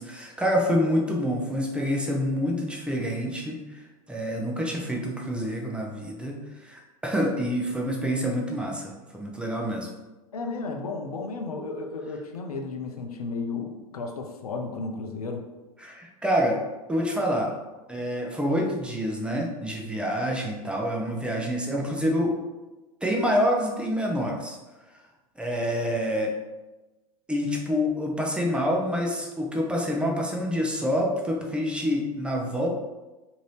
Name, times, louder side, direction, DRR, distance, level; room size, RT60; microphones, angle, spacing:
voice 1, 0.0-9.9 15.8-16.6 16.9-17.6 17.9-22.4 23.0-24.6 24.9-25.0 25.4-26.3 27.3-32.7, equal, 5° right, -1 dB, 0.5 m, -27 dB
voice 2, 10.3-15.4, left 3 dB, 85° left, 4 dB, 0.5 m, -33 dB
2.7 x 2.6 x 3.2 m, 1.1 s
hypercardioid pair, 90°, 19 cm